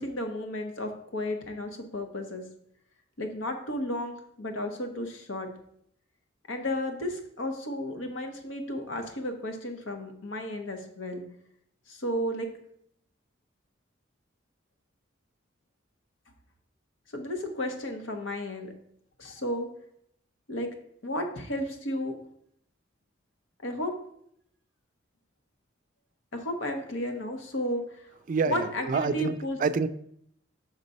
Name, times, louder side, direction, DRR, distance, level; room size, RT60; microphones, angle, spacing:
voice 1, 0.0-2.5 3.2-5.5 6.5-11.2 11.9-12.5 17.1-18.7 19.2-19.7 20.5-20.7 21.0-22.2 23.6-23.9 26.3-28.1 28.5-29.6, left 1 dB, 85° left, 5 dB, 1.1 m, -33 dB
voice 2, 28.3-29.9, right 4 dB, 45° right, 12 dB, 0.3 m, -27 dB
6.0 x 4.1 x 5.2 m, 0.70 s
head